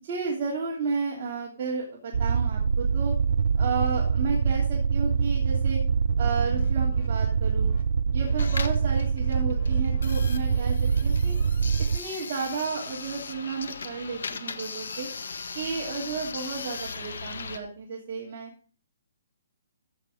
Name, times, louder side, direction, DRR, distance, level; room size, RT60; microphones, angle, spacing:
voice 1, 0.0-3.1 3.6-5.8 6.2-7.7 8.1-11.4 11.9-15.1 15.5-18.5, right 5 dB, 30° right, -5 dB, 3.0 m, -32 dB
sound 1, 2.1-12.0, right 6 dB, 70° right, 0.4 m, -24 dB
sound 2, 6.0-7.1 7.5-7.8 8.1-8.4 8.6-11.9, left 3 dB, 45° left, 2.3 m, -45 dB
sound 3, 8.3-17.6, left 5 dB, 80° left, 1.5 m, -38 dB
14.5 x 6.9 x 3.8 m, 0.41 s
hypercardioid pair, 170°, 0 cm